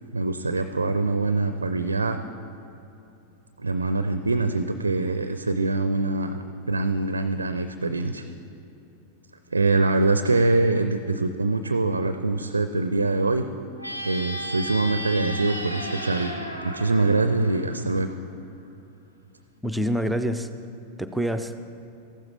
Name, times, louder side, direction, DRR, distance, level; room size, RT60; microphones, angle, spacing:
voice 1, 0.1-2.2 3.6-8.2 9.5-13.4 14.0-16.4 16.6-18.1, right 3 dB, 80° right, 9 dB, 0.4 m, -24 dB
sound 1, 13.8-18.2, equal, 85° left, 1.1 m, -34 dB
voice 2, 19.6-20.5 21.0-21.6, equal, 5° right, 8 dB, 0.5 m, -26 dB
14.5 x 12.0 x 3.3 m, 2.8 s
figure-of-eight pair, 90°, 0 cm